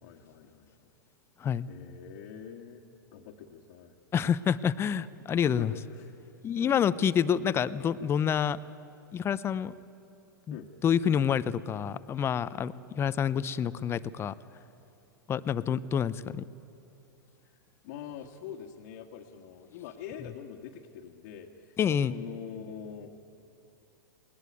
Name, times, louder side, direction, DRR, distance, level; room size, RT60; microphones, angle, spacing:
voice 1, 0.0-0.9 1.7-2.8 3.1-4.0 5.4-6.2 6.6-6.8 10.5-10.7 17.4-17.5 17.8-21.8 22.1-23.1, left 8 dB, 50° left, -1 dB, 1.6 m, -44 dB
voice 2, 4.1-5.7 6.4-8.6 9.1-9.7 10.5-10.6 10.8-14.4 15.3-16.4 21.8-22.1, left 8 dB, 20° left, 16 dB, 0.6 m, -28 dB
20.0 x 19.5 x 9.4 m, 2.7 s
hypercardioid pair, 110°, 11 cm